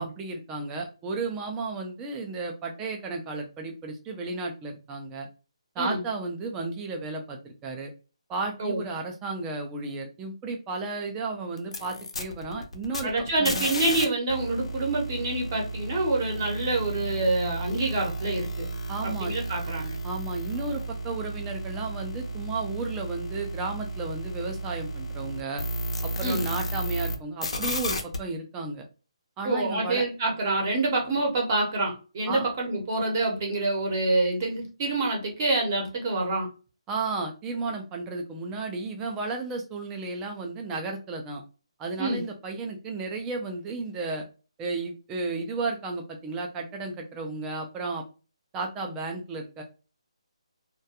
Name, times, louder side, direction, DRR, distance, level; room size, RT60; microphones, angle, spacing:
voice 1, 0.0-5.3 5.8-7.9 8.3-13.1 13.4-13.6 18.9-19.3 20.0-25.6 26.0-28.8 29.4-30.0 32.3-32.5 36.9-41.4 41.8-44.2 44.6-48.0 48.5-49.6, right 3 dB, 10° right, 2 dB, 0.3 m, -33 dB
sound 1, 11.6-14.0 14.3-27.2 27.4-28.2, right 1 dB, 70° left, 0.6 m, -33 dB
voice 2, 13.0-18.7 19.0-20.0 26.2-26.4 29.4-36.5 42.0-42.2, right 2 dB, 30° right, 0 dB, 0.7 m, -27 dB
2.3 x 2.2 x 2.7 m, 0.33 s
hypercardioid pair, 170°, 3 cm